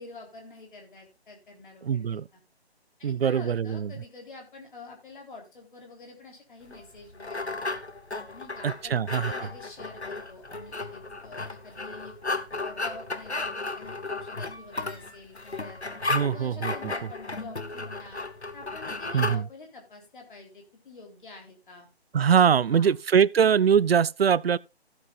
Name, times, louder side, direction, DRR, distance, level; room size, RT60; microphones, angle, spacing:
voice 1, 0.0-2.2 3.0-7.8 8.3-12.1 12.6-15.8 16.3-18.2 18.5-21.9 22.6-23.0, left 3 dB, 50° left, 3.7 m, -47 dB
voice 2, 1.8-2.2 3.0-3.9 8.6-9.3 16.1-16.7 19.1-19.5 22.1-24.6, right 7 dB, 65° right, 0.4 m, -22 dB
sound 1, 6.7-19.4, left 3 dB, 90° left, 1.2 m, -34 dB
16.0 x 7.9 x 2.5 m
figure-of-eight pair, 145°, 33 cm